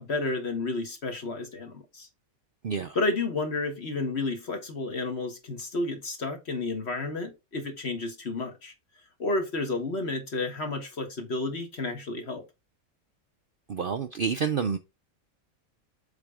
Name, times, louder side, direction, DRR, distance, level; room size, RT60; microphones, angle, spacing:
voice 1, 0.0-2.1 2.9-8.7 9.2-12.4, left 3 dB, 50° left, 1.7 m, -31 dB
voice 2, 2.6-3.0 13.7-14.8, right 6 dB, 55° right, 0.6 m, -28 dB
7.5 x 3.4 x 4.9 m
omnidirectional pair, 1.5 m